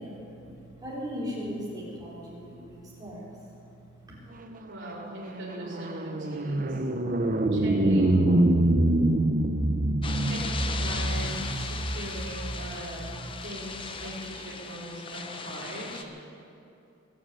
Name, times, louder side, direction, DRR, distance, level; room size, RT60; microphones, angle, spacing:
voice 1, 0.0-4.2, equal, 20° right, -6 dB, 4.4 m, -39 dB
sound 1, 4.5-14.0, right 1 dB, 40° right, 0.8 m, -26 dB
voice 2, 4.7-6.8 7.5-8.3 10.2-13.1 13.4-16.1, right 1 dB, 60° right, -6 dB, 4.3 m, -40 dB
sound 2, 10.0-16.0, left 4 dB, 25° left, 0.7 m, -38 dB
22.0 x 7.6 x 8.3 m, 2.6 s
head